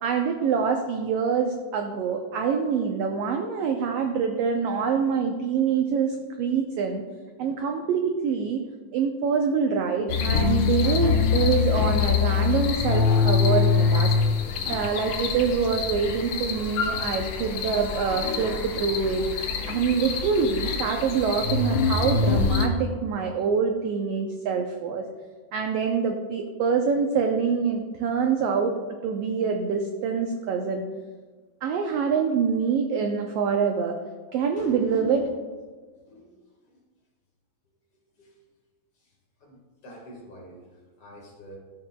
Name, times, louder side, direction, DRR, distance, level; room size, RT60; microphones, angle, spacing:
voice 1, 0.0-7.0 7.4-8.6 8.9-14.1 14.7-25.0 25.5-28.7 29.0-30.8 31.6-34.0 34.3-35.3, right 6 dB, 85° right, 3 dB, 1.4 m, -25 dB
sound 1, 10.1-22.7, left 6 dB, 85° left, 1.1 m, -25 dB
voice 2, 34.6-35.2 36.1-36.2 39.8-40.6 41.0-41.6, left 1 dB, 50° left, -1 dB, 2.3 m, -39 dB
13.5 x 7.5 x 2.2 m, 1.4 s
omnidirectional pair, 3.5 m